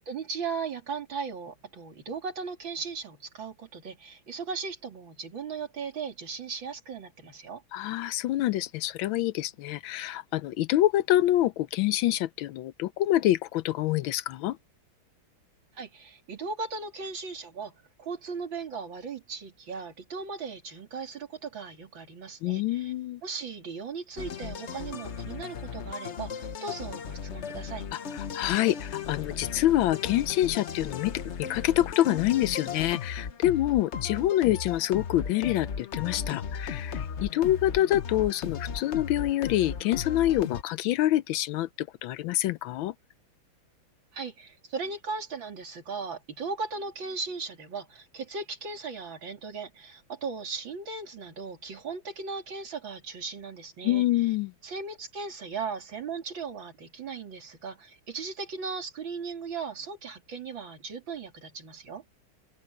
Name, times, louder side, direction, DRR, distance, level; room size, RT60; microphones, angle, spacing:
voice 1, 0.0-7.6 15.8-17.7 18.0-22.9 23.2-27.9 44.1-54.1 54.6-62.0, right 5 dB, 70° right, 3.6 m, -37 dB
voice 2, 7.7-14.6 22.4-23.2 28.1-31.1 31.4-42.9 53.8-54.5, left 14 dB, 80° left, 1.3 m, -26 dB
sound 1, 24.2-40.6, left 7 dB, 45° left, 0.9 m, -36 dB
omnidirectional pair, 2.2 m